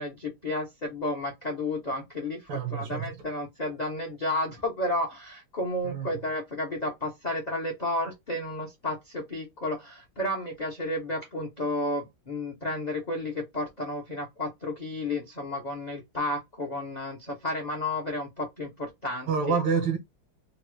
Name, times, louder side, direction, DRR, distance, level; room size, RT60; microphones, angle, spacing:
voice 1, 0.0-19.6, left 1 dB, 65° left, 0.4 m, -32 dB
voice 2, 2.5-3.2 5.8-6.2 19.3-20.0, right 6 dB, 85° right, 1.6 m, -28 dB
4.1 x 2.0 x 3.0 m
omnidirectional pair, 2.1 m